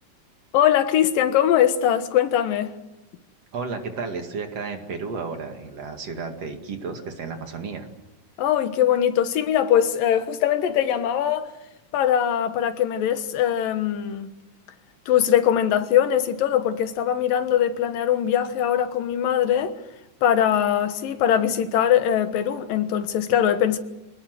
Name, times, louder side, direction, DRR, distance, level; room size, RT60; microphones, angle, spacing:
voice 1, 0.5-2.7 8.4-11.5 11.9-14.3 15.1-19.7 20.2-23.8, left 10 dB, 85° left, 3.1 m, -21 dB
voice 2, 3.5-7.9, right 4 dB, 50° right, 3.0 m, -32 dB
26.5 x 19.0 x 7.9 m
omnidirectional pair, 3.9 m